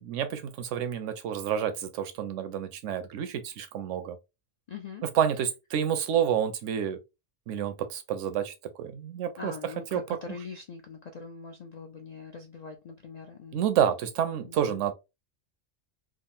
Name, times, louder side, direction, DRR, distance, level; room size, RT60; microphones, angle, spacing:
voice 1, 0.0-4.2 5.1-7.0 7.5-9.5 9.9-10.0 13.5-14.9, right 9 dB, 90° right, 0.9 m, -29 dB
voice 2, 4.7-5.0 9.4-13.7 14.3-14.8, left 5 dB, 70° left, 0.4 m, -42 dB
3.6 x 2.0 x 2.6 m
omnidirectional pair, 1.2 m